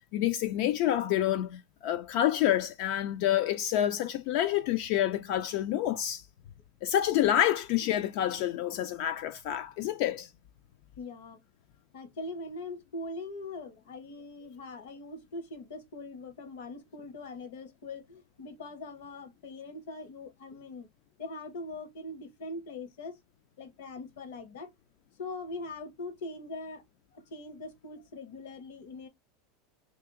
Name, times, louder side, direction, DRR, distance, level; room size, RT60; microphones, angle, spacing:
voice 1, 0.1-6.2 6.8-10.3, left 12 dB, 60° left, 0.3 m, -28 dB
voice 2, 11.0-11.4 11.9-20.9 21.2-23.2 23.6-24.7 25.2-26.8 27.1-29.1, left 2 dB, 75° left, 1.1 m, -42 dB
2.7 x 2.5 x 3.7 m
supercardioid pair, 130°, 0 cm